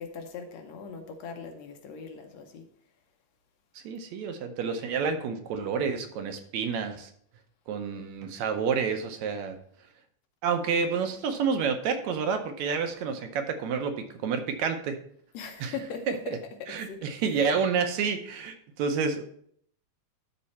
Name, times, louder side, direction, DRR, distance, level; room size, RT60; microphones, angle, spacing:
voice 1, 0.0-2.6 15.3-17.5, left 5 dB, 70° left, 1.9 m, -40 dB
voice 2, 3.8-7.1 7.7-9.6 10.4-15.0 15.6-15.7 16.3-16.4 16.7-19.2, right 6 dB, 75° right, 2.0 m, -29 dB
12.5 x 4.3 x 4.2 m
omnidirectional pair, 3.4 m